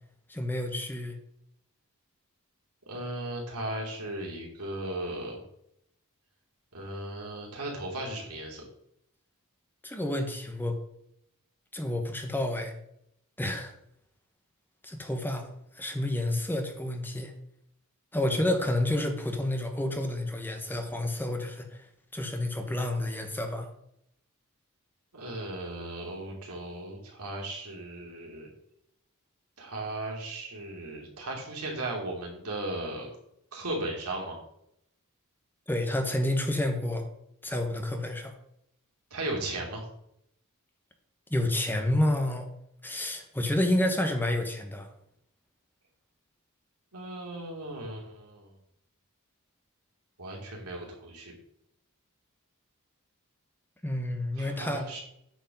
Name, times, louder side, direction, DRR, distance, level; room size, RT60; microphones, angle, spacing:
voice 1, 0.3-1.2 9.8-10.8 11.7-12.7 13.4-13.7 14.8-15.5 15.7-17.3 18.1-21.9 22.1-23.7 35.7-37.0 37.4-38.3 41.3-42.5 42.8-44.9 53.8-54.9, left 1 dB, 10° left, 4 dB, 1.1 m, -29 dB
voice 2, 2.9-5.4 6.7-8.7 25.1-28.5 29.6-33.1 33.5-34.4 39.1-39.9 46.9-48.5 50.2-51.3 54.3-55.0, right 1 dB, 85° right, -1 dB, 3.0 m, -36 dB
9.0 x 5.2 x 5.4 m, 0.75 s
head